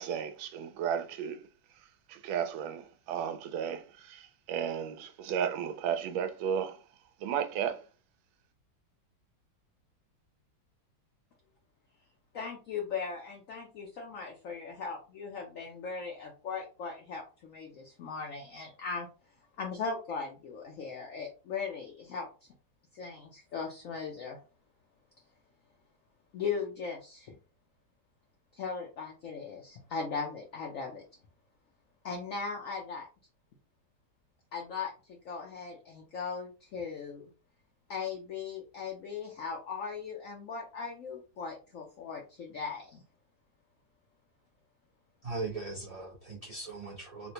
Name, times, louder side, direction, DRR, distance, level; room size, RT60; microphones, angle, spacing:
voice 1, 0.0-1.4 2.1-6.8 7.2-7.8, right 8 dB, 85° right, 1.3 m, -34 dB
voice 2, 12.3-19.1 19.6-22.3 22.9-24.4 26.3-27.3 28.5-31.0 32.0-33.1 34.5-37.3 37.9-43.0, left 5 dB, 70° left, 0.7 m, -38 dB
voice 3, 45.2-47.3, right 3 dB, 65° right, 0.3 m, -39 dB
4.0 x 2.1 x 2.8 m
omnidirectional pair, 2.1 m